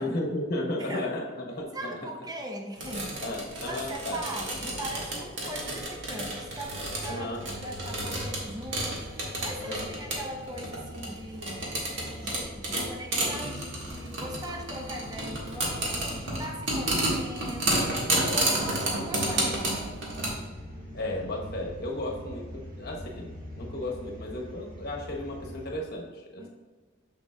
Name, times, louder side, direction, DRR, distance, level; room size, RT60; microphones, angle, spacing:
voice 1, 0.0-1.9 2.9-4.2 7.1-7.4 8.0-8.1 9.6-9.9 20.9-26.5, left 1 dB, 55° left, -1 dB, 1.2 m, -34 dB
voice 2, 0.8-1.2 1.7-3.1 3.6-11.7 12.2-18.0 18.3-19.8 26.4-26.5, right 1 dB, 20° right, 2 dB, 0.6 m, -40 dB
sound 1, 2.8-20.3, right 1 dB, 70° right, 1.8 m, -31 dB
sound 2, 7.9-25.7, equal, 45° right, 1.3 m, -45 dB
6.8 x 6.8 x 2.4 m, 1.4 s
head